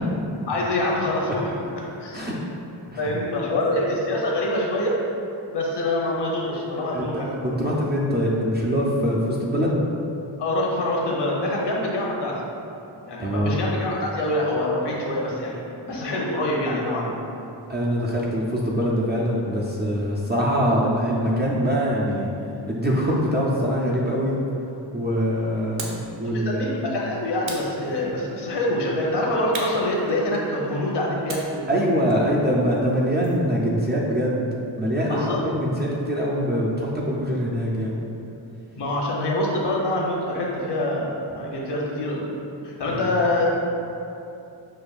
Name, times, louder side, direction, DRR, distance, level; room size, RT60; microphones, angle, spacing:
voice 1, 0.5-1.4 2.0-2.3 3.0-5.0 5.5-7.3 10.4-12.4 13.0-15.6 15.9-17.2 26.3-31.7 35.1-35.4 38.8-42.4 42.6-43.5, left 1 dB, 60° left, -3 dB, 0.8 m, -25 dB
voice 2, 6.9-9.8 13.2-13.6 17.7-22.3 22.7-24.4 24.9-26.8 31.7-34.5 34.8-38.0 42.9-43.1, equal, 25° right, -5 dB, 0.3 m, -23 dB
sound 1, 25.8-26.1 27.4-28.4 29.5-30.6 31.3-33.5, right 3 dB, 75° right, 0.7 m, -38 dB
6.3 x 2.5 x 2.3 m, 2.7 s
wide cardioid pair, 120°, 46 cm